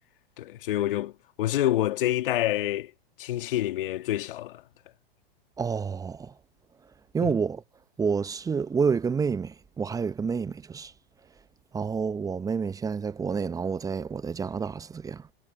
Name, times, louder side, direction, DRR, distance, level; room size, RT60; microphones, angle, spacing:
voice 1, 0.4-1.1 1.4-2.9 3.2-4.6 7.2-7.3, left 14 dB, 65° left, 2.3 m, -27 dB
voice 2, 5.6-6.3 7.1-7.6 8.0-10.9 11.7-15.3, right 5 dB, 10° right, 0.7 m, -29 dB
hypercardioid pair, 110°, 30 cm